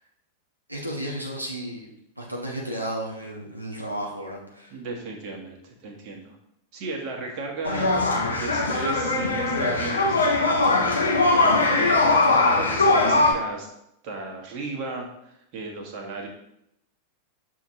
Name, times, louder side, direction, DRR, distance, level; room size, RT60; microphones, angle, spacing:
voice 1, 0.7-1.9 2.2-4.7, right 1 dB, 90° right, -2 dB, 0.7 m, -33 dB
voice 2, 4.7-6.4 6.7-13.7 14.0-16.3, right 3 dB, 40° right, 0 dB, 1.0 m, -36 dB
sound 1, 7.6-13.3, left 2 dB, 75° left, 0.7 m, -21 dB
6.9 x 2.9 x 2.7 m, 0.77 s
figure-of-eight pair, 90°, 0 cm